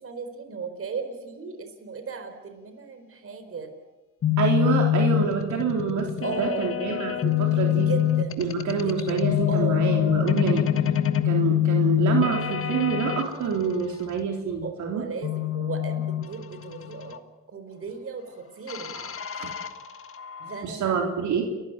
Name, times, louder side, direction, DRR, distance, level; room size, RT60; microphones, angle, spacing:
voice 1, 0.0-3.7 6.2-6.7 7.9-8.3 9.1-9.2 9.5-9.8 14.6-17.2 17.5-18.9 20.4-20.9, right 5 dB, 45° right, 7 dB, 4.4 m, -35 dB
sound 1, 4.2-13.3 15.2-17.2 18.7-20.6, left 11 dB, 45° left, 1.7 m, -25 dB
voice 2, 4.4-7.9 8.4-10.6 11.2-15.0 18.9-19.5 20.6-21.4, right 6 dB, 75° right, 2 dB, 3.6 m, -27 dB
29.5 x 14.5 x 9.2 m, 1.1 s
cardioid pair, 90°, 30 cm